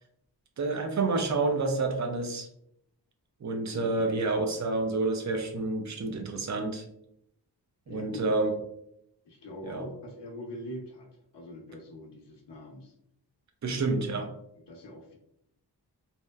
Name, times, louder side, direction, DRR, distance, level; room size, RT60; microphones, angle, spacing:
voice 1, 0.6-2.5 3.4-6.8 7.9-8.5 9.7-9.8 13.6-14.3, right 3 dB, 45° right, 4 dB, 0.5 m, -29 dB
voice 2, 3.7-4.2 7.9-8.2 9.2-11.1 11.3-12.9 13.6-13.9 14.7-15.2, left 1 dB, 80° left, 1 dB, 0.6 m, -43 dB
2.8 x 2.0 x 2.2 m, 0.74 s
wide cardioid pair, 105°, 41 cm